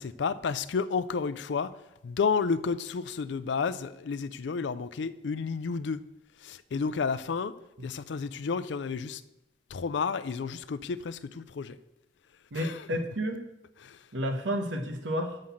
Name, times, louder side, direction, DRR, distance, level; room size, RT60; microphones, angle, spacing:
voice 1, 0.0-1.7 2.0-6.0 6.4-7.5 7.8-9.2 9.7-11.8 12.5-12.8 13.8-14.0, left 5 dB, 65° left, 15 dB, 0.4 m, -31 dB
voice 2, 12.5-13.4 14.1-15.4, equal, 80° right, 6 dB, 1.1 m, -31 dB
6.4 x 5.7 x 7.2 m, 0.90 s
head